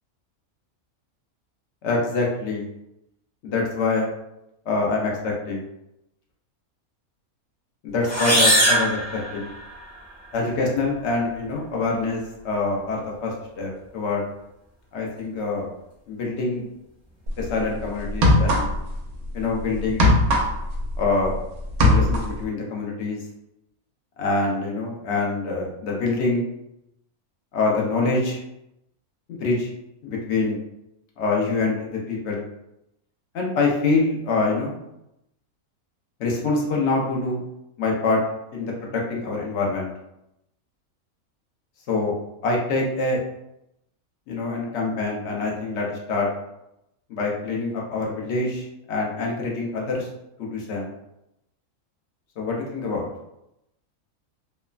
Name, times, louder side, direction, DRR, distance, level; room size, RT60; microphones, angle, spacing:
voice 1, 1.8-2.7 3.4-4.1 4.7-5.6 7.8-9.5 10.3-14.2 14.9-15.7 16.1-16.7 17.4-18.7 19.3-20.1 21.0-21.4 21.8-23.2 24.2-26.5 27.5-28.4 29.3-29.7 30.0-30.6 31.2-32.5 33.3-34.8 36.2-37.4 37.8-38.2 38.5-39.9 41.9-42.1 42.4-43.2 44.3-46.3 47.1-50.1 50.4-50.9 52.4-53.1, left 3 dB, 60° left, -2 dB, 0.8 m, -25 dB
sound 1, 8.0-9.9, equal, 15° left, 0.7 m, -21 dB
sound 2, 17.3-17.5 18.1-19.0 19.3-21.4 21.6-22.4, left 1 dB, 90° right, 1.1 m, -19 dB
3.1 x 2.0 x 2.3 m, 0.84 s
omnidirectional pair, 1.5 m